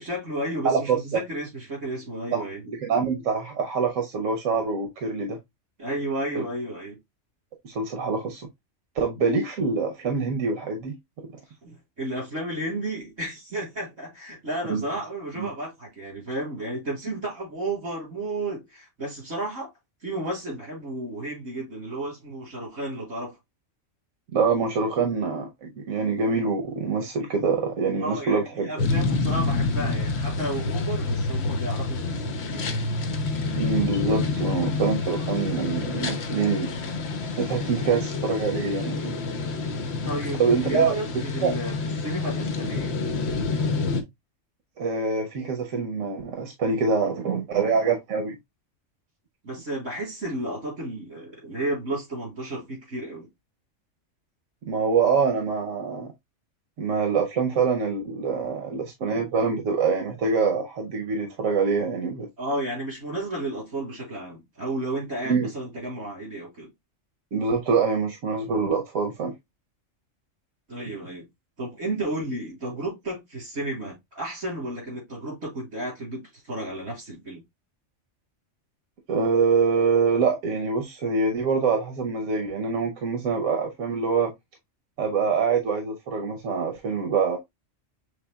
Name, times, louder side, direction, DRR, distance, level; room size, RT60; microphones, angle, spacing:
voice 1, 0.0-2.6 5.8-7.0 11.6-19.7 20.0-23.4 28.0-32.9 37.7-38.0 40.0-41.7 42.0-43.0 49.4-53.3 62.4-66.7 70.7-71.3 71.6-77.4, right 1 dB, 70° right, 4.0 m, -32 dB
voice 2, 0.6-1.2 2.3-5.4 6.3-6.4 7.6-8.4 8.9-11.0 14.7-14.8 15.4-15.5 24.3-28.9 33.5-36.7 37.4-39.1 40.4-41.0 41.4-41.5 44.8-48.4 54.6-56.1 56.8-62.3 65.3-65.5 67.3-69.3 79.1-84.3 85.0-87.4, right 5 dB, 90° right, 1.2 m, -25 dB
sound 1, 28.8-44.0, left 3 dB, 60° left, 1.0 m, -28 dB
6.4 x 3.4 x 2.2 m
omnidirectional pair, 1.3 m